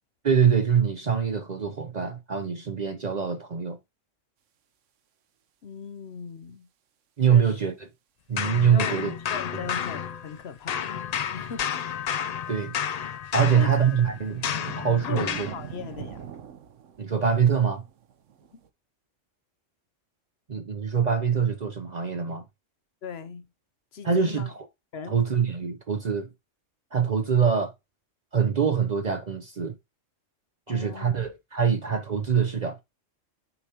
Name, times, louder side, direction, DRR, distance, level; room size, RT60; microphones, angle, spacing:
voice 1, 0.2-3.8 7.2-7.9 8.3-9.1 9.5-9.6 12.5-12.8 13.3-14.5 14.8-15.5 17.0-17.8 20.5-22.4 24.0-24.7 25.1-26.3 26.9-27.7 28.3-29.8 30.7-32.8, right 7 dB, 45° right, 0.6 m, -24 dB
voice 2, 5.6-6.7 7.3-7.6 8.7-11.9 13.4-13.7 15.1-16.2 23.0-23.5 23.9-24.5 24.9-25.2 30.7-31.2, left 6 dB, 60° left, 0.8 m, -39 dB
sound 1, 8.4-10.4 10.7-15.6, left 8 dB, 80° left, 0.3 m, -31 dB
sound 2, 12.1-12.8 13.8-18.7, right 8 dB, 80° right, 1.1 m, -42 dB
6.9 x 4.8 x 2.8 m
omnidirectional pair, 1.3 m